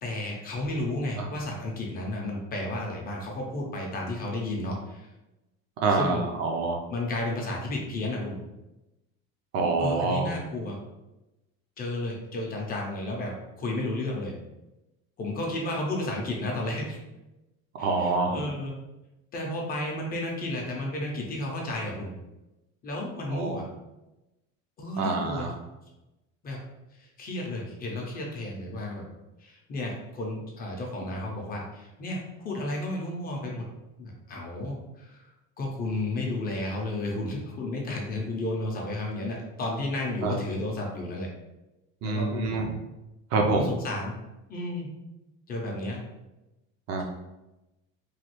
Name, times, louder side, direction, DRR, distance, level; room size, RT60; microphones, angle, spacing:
voice 1, 0.0-5.1 5.9-6.3 6.9-8.4 9.8-10.8 11.8-14.3 15.2-17.0 17.8-18.8 19.3-22.1 22.8-23.7 24.8-25.5 26.4-26.6 27.0-29.1 29.4-33.7 34.0-35.3 35.6-41.3 42.0-42.5 43.5-44.1 44.5-44.9 45.5-46.0, left 2 dB, 30° left, -1 dB, 0.5 m, -32 dB
voice 2, 5.8-6.8 9.5-10.3 17.7-18.4 23.3-23.6 25.0-25.5 40.2-40.4 42.0-42.7 43.3-43.7 46.9-47.0, right 3 dB, 50° right, 2 dB, 0.5 m, -26 dB
3.1 x 2.3 x 2.9 m, 0.99 s
cardioid pair, 160°, 32 cm